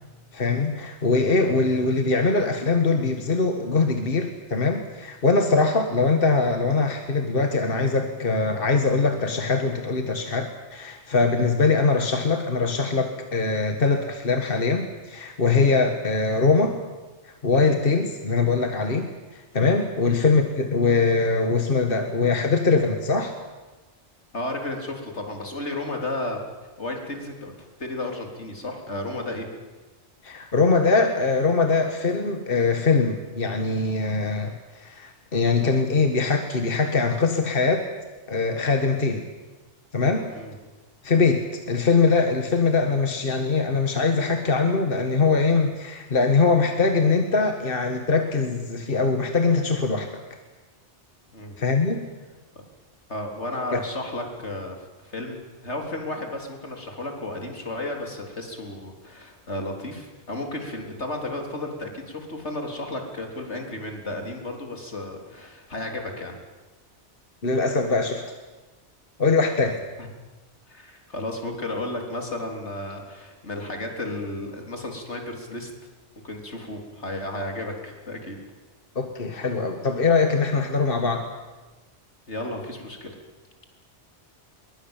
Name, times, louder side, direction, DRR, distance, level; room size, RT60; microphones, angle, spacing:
voice 1, 0.3-16.7 17.2-19.1 19.3-23.3 30.2-37.9 38.3-39.2 39.9-40.3 41.0-50.1 51.6-52.0 53.7-53.8 67.4-68.2 69.2-69.7 79.0-81.3, left 4 dB, 50° left, 5 dB, 1.9 m, -22 dB
voice 2, 24.3-26.4 26.8-29.5 40.3-40.6 51.3-51.6 52.5-52.6 53.1-54.8 55.0-66.4 70.0-70.1 70.7-75.7 76.2-78.4 82.3-83.2, left 1 dB, 75° left, 2 dB, 4.2 m, -33 dB
23.0 x 22.5 x 9.0 m, 1.2 s
omnidirectional pair, 1.2 m